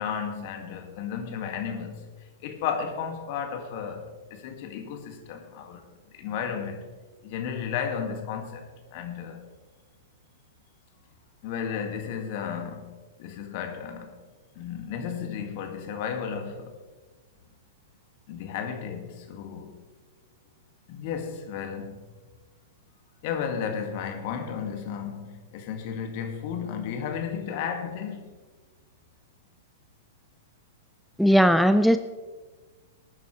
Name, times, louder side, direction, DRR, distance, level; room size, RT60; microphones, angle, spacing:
voice 1, 0.0-2.1 2.4-5.8 6.1-6.9 7.2-9.4 11.4-12.9 13.2-14.2 14.6-16.8 18.3-19.7 20.9-22.1 23.2-28.2, left 7 dB, 50° left, 2.1 m, -33 dB
voice 2, 31.2-32.0, equal, ahead, 0.4 m, -18 dB
19.0 x 9.2 x 3.3 m
hypercardioid pair, 105°, 0 cm